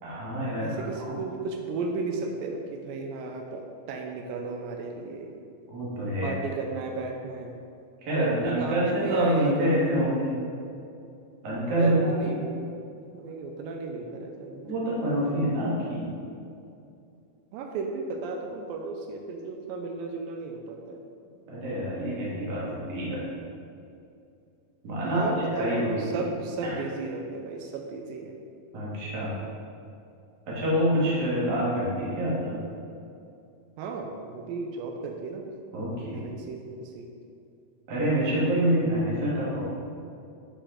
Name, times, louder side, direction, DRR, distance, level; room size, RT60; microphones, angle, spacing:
voice 1, 0.0-0.7 1.0-1.2 5.7-6.3 8.0-10.3 11.4-12.3 14.6-16.0 21.5-23.2 24.8-25.2 25.5-26.0 26.6-26.7 28.7-29.3 30.5-32.6 35.7-36.3 37.9-39.6, equal, 45° right, -7 dB, 1.4 m, -26 dB
voice 2, 0.6-5.3 6.2-7.6 8.2-9.8 11.8-12.5 13.1-14.7 17.5-21.0 25.0-28.4 33.8-35.5 36.1-37.1, right 3 dB, 85° right, 3 dB, 2.2 m, -34 dB
6.7 x 4.9 x 3.7 m, 2.5 s
omnidirectional pair, 4.1 m